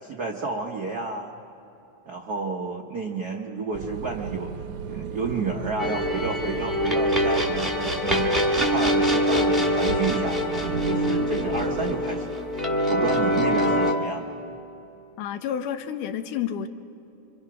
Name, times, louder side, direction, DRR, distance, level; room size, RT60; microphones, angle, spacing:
voice 1, 0.0-1.3 2.1-4.5 4.9-12.4 12.9-14.3, right 4 dB, 90° right, 1 dB, 0.8 m, -31 dB
sound 1, 3.7-11.9, right 6 dB, 70° right, 1.5 m, -35 dB
sound 2, 5.8-13.9, equal, ahead, 1.2 m, -24 dB
voice 2, 15.2-16.7, left 9 dB, 80° left, 8 dB, 2.3 m, -30 dB
26.0 x 25.5 x 6.0 m, 3.0 s
omnidirectional pair, 3.6 m